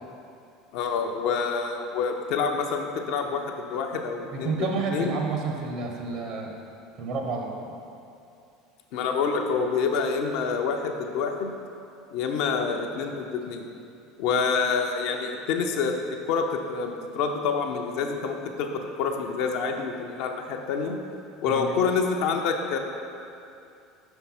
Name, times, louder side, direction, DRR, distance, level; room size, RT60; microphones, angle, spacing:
voice 1, 0.7-4.6 4.9-5.2 8.9-11.5 12.1-13.6 14.2-21.0 21.4-22.8, left 5 dB, 60° left, 3 dB, 0.5 m, -27 dB
voice 2, 4.3-6.5 7.0-7.8 21.5-21.8, right 4 dB, 50° right, 1 dB, 0.8 m, -30 dB
5.3 x 4.5 x 4.1 m, 2.5 s
figure-of-eight pair, 70°, 0 cm